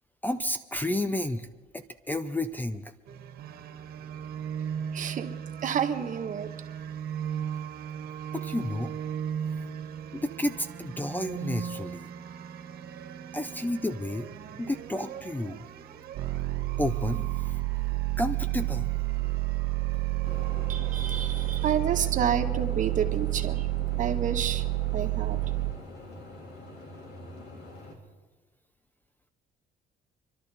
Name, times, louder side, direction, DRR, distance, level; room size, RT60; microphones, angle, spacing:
voice 1, 0.2-1.5 1.7-2.9 8.3-8.9 10.1-12.1 13.3-14.3 14.6-15.6 16.8-17.6 18.2-18.9, left 1 dB, 10° left, 10 dB, 0.7 m, -31 dB
sound 1, 3.1-22.1, right 8 dB, 65° right, 1.6 m, -39 dB
voice 2, 4.9-5.3 5.6-6.5 20.7-23.7 24.0-24.7 24.9-25.4, right 8 dB, 50° right, 6 dB, 1.4 m, -29 dB
sound 2, 16.1-25.7, right 20 dB, 90° right, 1.3 m, -29 dB
sound 3, 20.2-27.9, left 2 dB, 75° left, 3.6 m, -44 dB
27.0 x 12.0 x 4.2 m, 1.2 s
cardioid pair, 110°, 17 cm